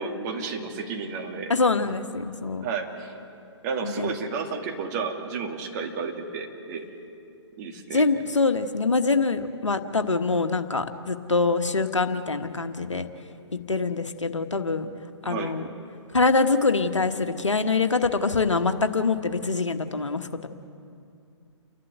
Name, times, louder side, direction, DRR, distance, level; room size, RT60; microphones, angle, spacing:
voice 1, 0.0-1.5 2.6-3.1 3.6-6.9 7.6-8.0 15.2-15.6, right 5 dB, 35° right, 2 dB, 2.3 m, -32 dB
voice 2, 1.5-2.6 3.8-4.2 7.9-13.1 13.7-14.9 15.2-15.6 16.1-20.5, left 3 dB, 85° left, 7 dB, 1.3 m, -24 dB
29.5 x 12.0 x 8.0 m, 2.6 s
figure-of-eight pair, 130°, 15 cm